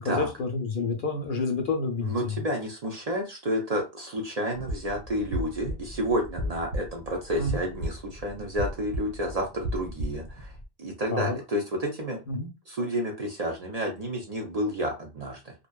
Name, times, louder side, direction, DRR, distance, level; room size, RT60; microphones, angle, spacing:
voice 1, 0.0-2.4 7.4-7.6 11.1-11.4 12.3-12.5, left 3 dB, 60° left, 4 dB, 0.7 m, -29 dB
voice 2, 2.0-12.2 12.7-15.5, equal, 50° right, 1 dB, 0.5 m, -30 dB
sound 1, 4.5-10.6, equal, 90° right, 0.9 m, -35 dB
2.6 x 2.1 x 2.2 m, 0.26 s
omnidirectional pair, 1.0 m